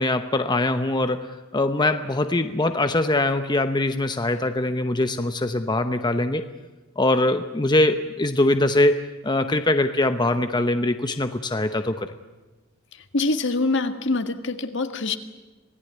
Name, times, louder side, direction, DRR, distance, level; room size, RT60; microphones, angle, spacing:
voice 1, 0.0-6.4 7.0-12.1, left 2 dB, 20° left, 8 dB, 0.9 m, -22 dB
voice 2, 12.9-15.2, left 3 dB, 60° left, 8 dB, 1.7 m, -25 dB
26.5 x 18.0 x 9.5 m, 1.2 s
head